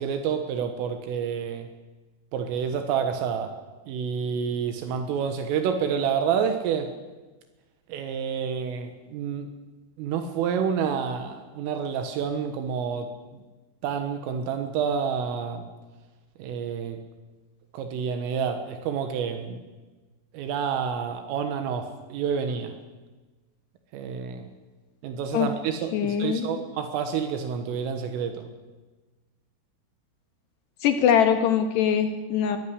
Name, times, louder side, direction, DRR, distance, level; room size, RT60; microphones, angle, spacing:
voice 1, 0.0-1.7 2.3-3.5 3.9-6.9 7.9-9.5 10.0-13.4 13.8-15.7 16.4-17.0 17.7-19.6 20.3-22.7 23.9-24.5 25.0-28.5, right 7 dB, 80° right, 7 dB, 3.9 m, -28 dB
voice 2, 25.9-26.6 30.8-32.6, left 8 dB, 65° left, 7 dB, 3.1 m, -22 dB
22.5 x 15.0 x 9.8 m, 1.3 s
omnidirectional pair, 5.9 m